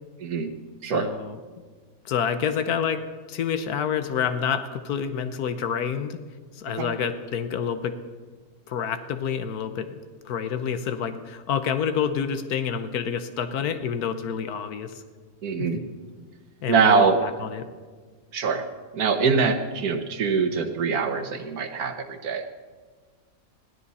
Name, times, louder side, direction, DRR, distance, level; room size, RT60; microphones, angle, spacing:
voice 1, 0.2-0.5 0.8-1.1 6.8-6.9 15.4-15.8 16.7-17.2 18.3-18.6 18.9-22.5, right 5 dB, 85° right, 6 dB, 1.6 m, -23 dB
voice 2, 0.9-1.4 2.0-6.2 6.5-8.0 8.7-10.0 10.2-15.0 15.6-15.7 16.6-17.7, left 7 dB, 90° left, 9 dB, 1.4 m, -28 dB
21.5 x 15.5 x 4.2 m, 1.5 s
omnidirectional pair, 1.6 m